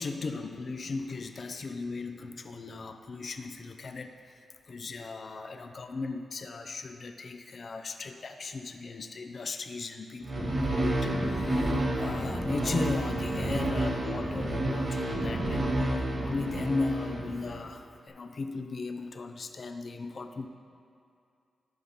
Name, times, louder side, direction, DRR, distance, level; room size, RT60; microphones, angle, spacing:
voice 1, 0.0-4.4 4.7-15.6 15.9-20.5, left 3 dB, 50° left, 6 dB, 0.5 m, -37 dB
sound 1, 10.2-17.7, right 1 dB, 55° right, 2.0 m, -30 dB
14.0 x 5.4 x 3.6 m, 2.4 s
cardioid pair, 75°, 0 cm